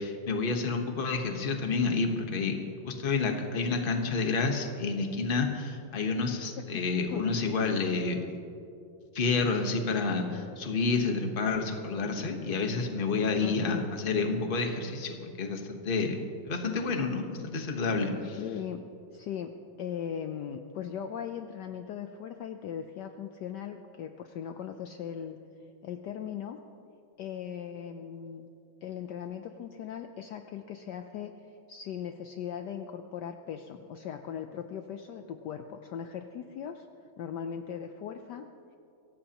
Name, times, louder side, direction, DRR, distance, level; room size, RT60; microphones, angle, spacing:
voice 1, 0.0-2.6 2.8-8.2 9.1-16.2 16.5-18.4, left 4 dB, 30° left, 4 dB, 1.1 m, -29 dB
voice 2, 13.4-13.9 18.4-18.9 19.1-19.5 19.8-25.4 25.8-26.6 27.2-28.5 28.8-36.9 37.2-38.5, left 8 dB, 70° left, 6 dB, 1.1 m, -39 dB
23.5 x 16.5 x 2.9 m, 2.6 s
omnidirectional pair, 2.2 m